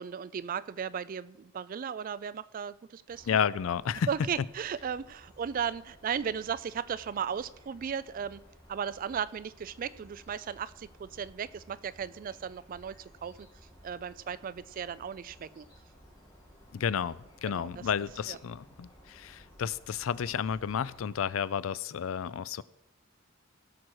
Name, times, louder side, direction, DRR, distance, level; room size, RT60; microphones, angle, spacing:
voice 1, 0.0-3.4 4.1-8.4 8.7-13.5 13.8-15.7 17.5-17.7 18.3-18.4, right 7 dB, 45° right, 17 dB, 0.3 m, -36 dB
sound 1, 3.1-21.2, equal, 20° left, 2.7 m, -57 dB
voice 2, 3.3-4.1 16.7-22.6, left 7 dB, 80° left, 19 dB, 0.4 m, -31 dB
16.5 x 6.2 x 4.7 m, 0.95 s
head